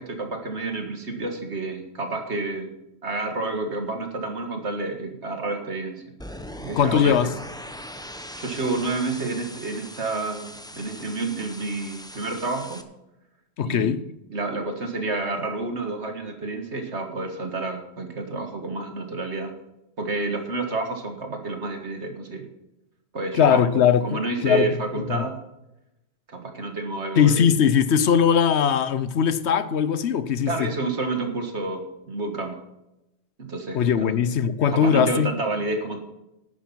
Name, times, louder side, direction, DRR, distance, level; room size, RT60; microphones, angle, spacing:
voice 1, 0.0-2.7 3.0-6.0 6.6-7.2 8.4-12.8 13.6-14.0 14.3-19.5 20.0-22.5 23.1-23.6 24.0-25.4 26.3-27.5 30.5-32.6 33.4-34.1 34.7-36.0, right 3 dB, 60° right, 2.0 m, -29 dB
sound 1, 6.2-12.8, equal, 5° left, 0.8 m, -40 dB
voice 2, 6.8-7.3 13.6-14.1 23.3-25.2 27.1-30.7 33.7-35.3, left 7 dB, 65° left, 1.0 m, -20 dB
11.0 x 9.6 x 5.9 m
omnidirectional pair, 1.3 m